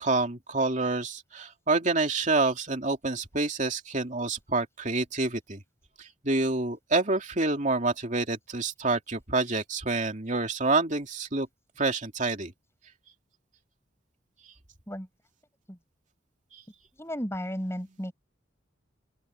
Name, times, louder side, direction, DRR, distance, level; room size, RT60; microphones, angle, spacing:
voice 1, 0.0-5.6 6.0-11.5 11.8-12.5, right 3 dB, 40° right, 2.6 m, -27 dB
voice 2, 17.0-18.1, equal, 15° left, 6.4 m, -34 dB
open air
head